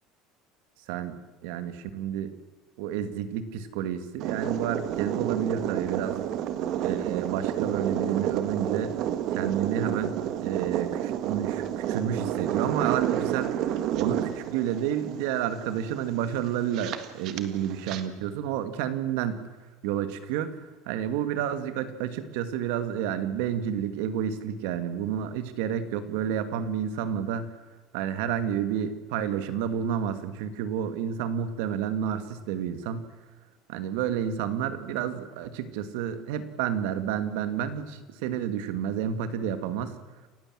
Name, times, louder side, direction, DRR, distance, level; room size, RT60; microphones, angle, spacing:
voice 1, 1.4-2.3 2.8-6.2 6.8-8.9 9.3-13.5 14.0-19.5 19.8-20.6 20.9-27.6 27.9-33.1 33.7-40.0, right 9 dB, 80° right, 11 dB, 2.3 m, -30 dB
sound 1, 4.2-18.0, right 10 dB, 50° right, 1.7 m, -30 dB
29.0 x 16.0 x 7.8 m, 1.3 s
cardioid pair, 160°, 0 cm